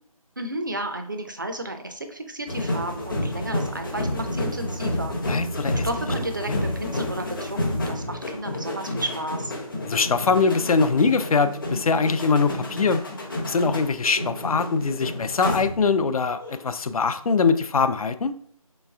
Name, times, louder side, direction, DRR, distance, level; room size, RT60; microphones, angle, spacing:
voice 1, 0.4-5.1 5.8-9.5, right 1 dB, 35° right, 6 dB, 0.4 m, -32 dB
sound 1, 2.5-16.0 16.3-16.7, left 1 dB, 35° left, 0.7 m, -30 dB
voice 2, 5.3-5.9 6.5-6.6 9.8-13.0 13.5-18.3, left 4 dB, 70° left, 11 dB, 0.4 m, -22 dB
3.3 x 3.1 x 3.3 m, 0.66 s
figure-of-eight pair, 165°, 19 cm